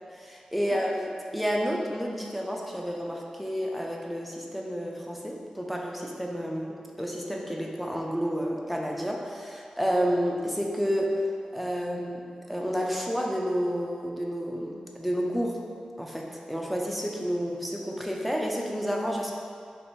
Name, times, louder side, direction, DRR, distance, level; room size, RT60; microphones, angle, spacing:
voice 1, 0.1-11.2 11.5-15.6 16.0-19.3, equal, ahead, -2 dB, 0.5 m, -30 dB
3.2 x 2.9 x 4.4 m, 2.2 s
wide cardioid pair, 105°, 2 cm